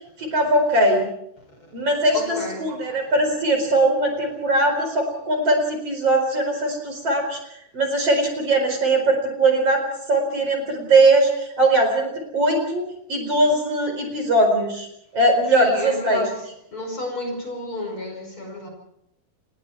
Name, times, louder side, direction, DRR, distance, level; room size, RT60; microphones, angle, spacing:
voice 1, 0.2-1.1 1.7-7.4 7.7-9.8 10.1-14.9 15.1-16.2, right 2 dB, 40° right, 4 dB, 5.4 m, -20 dB
voice 2, 2.1-2.7 15.5-16.4 16.7-18.7, left 1 dB, 35° left, 3 dB, 6.1 m, -31 dB
28.5 x 21.5 x 4.7 m, 0.77 s
omnidirectional pair, 4.3 m